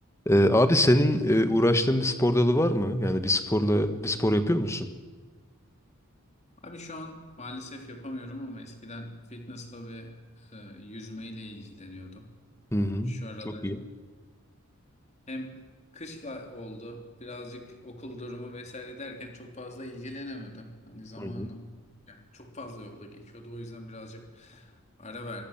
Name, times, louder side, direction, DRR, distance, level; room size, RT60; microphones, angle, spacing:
voice 1, 0.2-4.9 12.7-13.2 13.4-13.8 21.2-21.5, left 1 dB, 15° left, 9 dB, 1.5 m, -23 dB
voice 2, 6.6-12.3 13.0-13.7 15.3-15.6 15.9-21.8 22.1-25.4, left 1 dB, 30° left, 3 dB, 3.3 m, -41 dB
24.5 x 24.0 x 7.4 m, 1.4 s
head